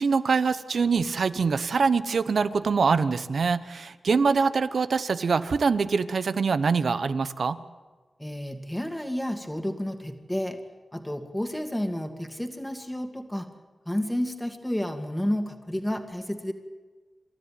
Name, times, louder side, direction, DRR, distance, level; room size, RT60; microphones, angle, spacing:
voice 1, 0.0-7.6, right 5 dB, 70° right, 14 dB, 0.9 m, -24 dB
voice 2, 8.2-10.6 10.9-13.5 13.9-16.5, equal, 5° left, 6 dB, 2.1 m, -31 dB
28.0 x 13.0 x 9.3 m, 1.4 s
wide cardioid pair, 90°, 0 cm